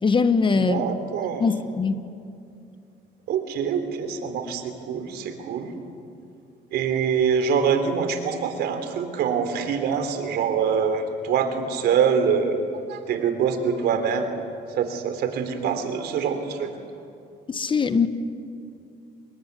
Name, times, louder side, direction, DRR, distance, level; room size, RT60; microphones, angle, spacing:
voice 1, 0.0-0.9 1.4-2.0 17.5-18.1, left 5 dB, 30° left, 11 dB, 1.3 m, -21 dB
voice 2, 0.5-1.4 3.3-5.7 6.7-12.6 12.9-14.3 14.7-16.7, right 6 dB, 70° right, 8 dB, 3.4 m, -24 dB
26.5 x 21.5 x 9.6 m, 2.5 s
cardioid pair, 110°, 17 cm